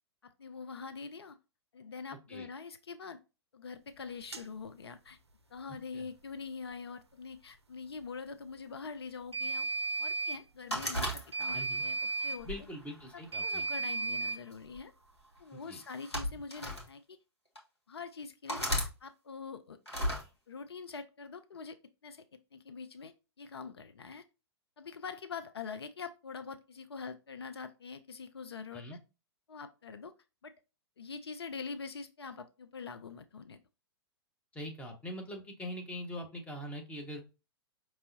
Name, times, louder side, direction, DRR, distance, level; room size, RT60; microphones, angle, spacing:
voice 1, 0.2-1.4 1.7-3.2 3.5-5.2 5.5-9.7 10.0-12.5 13.4-14.9 15.4-17.2 17.9-19.8 20.5-21.8 22.0-22.2 22.5-23.1 23.4-24.2 24.8-29.0 29.5-30.1 30.4-30.5 31.0-33.6, left 5 dB, 70° left, 0.4 m, -44 dB
sound 1, 4.3-4.5 9.3-10.4 11.3-12.4 13.3-14.4, right 3 dB, 85° right, 0.4 m, -34 dB
sound 2, 10.7-11.8 12.4-13.6 14.5-14.8 15.8-16.9 17.6-17.7 18.5-18.9 19.9-20.2, equal, 85° left, 1.4 m, -35 dB
voice 2, 11.5-11.8 12.4-13.6 15.5-15.8 28.7-29.0 34.5-37.2, equal, 10° left, 1.0 m, -43 dB
5.3 x 3.0 x 2.7 m
figure-of-eight pair, 105°, 14 cm